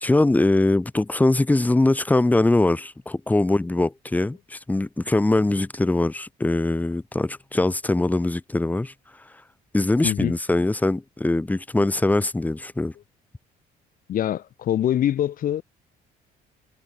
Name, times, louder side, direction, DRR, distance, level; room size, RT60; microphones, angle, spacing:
voice 1, 0.0-8.9 9.7-12.9, left 2 dB, 10° left, 0.9 m, -22 dB
voice 2, 14.1-15.6, left 11 dB, 55° left, 1.5 m, -24 dB
cardioid pair, 110°, 17 cm